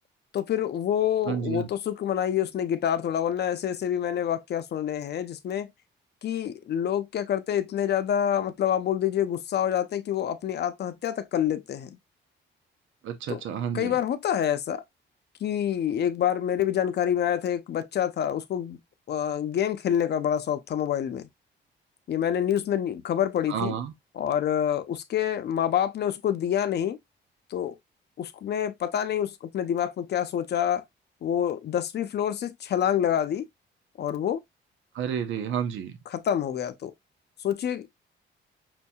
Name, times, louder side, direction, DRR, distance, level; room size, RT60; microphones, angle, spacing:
voice 1, 0.3-5.7 6.2-12.0 13.3-13.4 13.7-14.8 15.4-18.8 19.1-21.3 22.1-23.7 24.2-27.0 27.5-27.8 28.2-30.8 31.2-33.5 34.0-34.4 36.1-36.9 37.4-37.9, left 9 dB, 55° left, 0.6 m, -27 dB
voice 2, 1.3-1.7 13.0-14.0 23.5-23.9 34.9-35.9, right 8 dB, 75° right, 0.7 m, -30 dB
5.8 x 2.7 x 2.3 m
cardioid pair, 90°, 20 cm